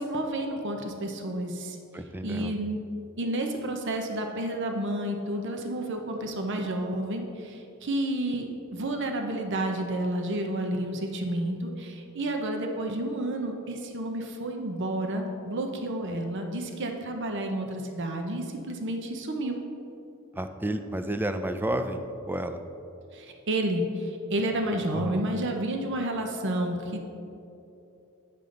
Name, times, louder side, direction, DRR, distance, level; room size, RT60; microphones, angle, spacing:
voice 1, 0.0-1.8 2.2-2.8 3.2-19.6 23.1-27.0, right 1 dB, 60° right, 4 dB, 0.8 m, -30 dB
voice 2, 1.9-2.5 20.3-22.0 22.3-22.6 24.9-25.2, right 1 dB, 10° right, 8 dB, 0.4 m, -31 dB
9.3 x 6.9 x 3.8 m, 2.8 s
head